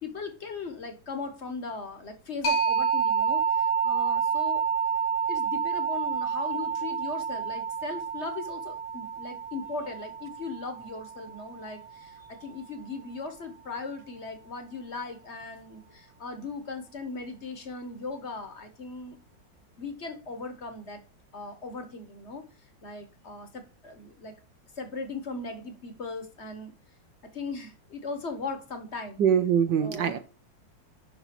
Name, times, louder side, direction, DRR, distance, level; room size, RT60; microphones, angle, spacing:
voice 1, 0.0-4.7 5.3-19.2 19.8-21.0 21.3-22.4 22.8-24.3 24.8-26.7 27.3-29.2 29.8-30.2, left 4 dB, 40° left, 8 dB, 1.4 m, -38 dB
sound 1, 2.4-11.8, right 6 dB, 85° left, 3.1 m, -29 dB
voice 2, 29.2-30.2, right 8 dB, 70° right, 10 dB, 1.4 m, -23 dB
11.0 x 4.2 x 6.0 m, 0.34 s
omnidirectional pair, 2.1 m